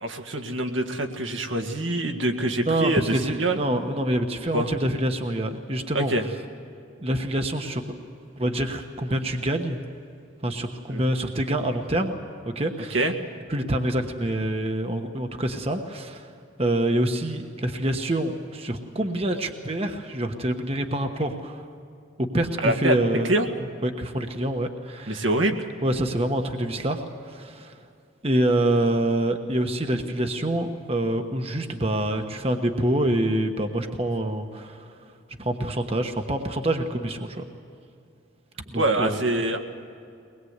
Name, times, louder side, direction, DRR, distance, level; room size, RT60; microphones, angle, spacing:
voice 1, 0.0-3.6 4.5-4.7 5.9-6.2 10.9-11.0 12.9-13.1 22.6-23.5 25.1-25.7 38.8-39.6, right 1 dB, 80° right, 4 dB, 1.9 m, -25 dB
voice 2, 2.7-6.1 7.0-7.9 8.4-9.8 10.4-12.1 12.5-13.0 13.5-16.3 16.6-21.7 22.2-23.3 23.8-25.3 25.8-27.7 28.2-34.9 35.4-37.4 38.7-39.2, right 1 dB, 30° right, 5 dB, 1.2 m, -26 dB
23.0 x 20.5 x 8.1 m, 2.4 s
head